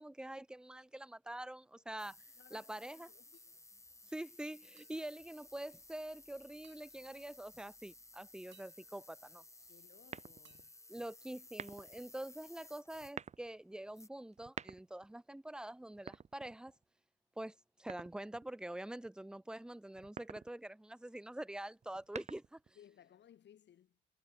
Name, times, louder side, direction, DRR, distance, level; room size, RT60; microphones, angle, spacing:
voice 1, 0.0-2.2 2.5-3.1 4.1-9.4 10.9-16.7 17.4-22.8, right 1 dB, 5° right, 0.6 m, -46 dB
sound 1, 2.0-13.2 13.7-14.1, left 2 dB, 15° left, 5.0 m, -58 dB
voice 2, 2.3-2.7 3.1-3.6 9.7-10.8 22.7-24.0, left 10 dB, 60° left, 2.7 m, -63 dB
sound 2, 3.3-3.9 4.8-6.2 6.6-7.7 8.5-10.0 10.4-11.9, right 11 dB, 70° right, 4.6 m, -72 dB
sound 3, 10.1-10.7 11.5-12.0 12.9-13.5 14.3-15.1 15.9-16.8 17.9-18.5 19.9-20.5 21.8-22.7, right 6 dB, 35° right, 0.8 m, -48 dB
cardioid pair, 90°, 20 cm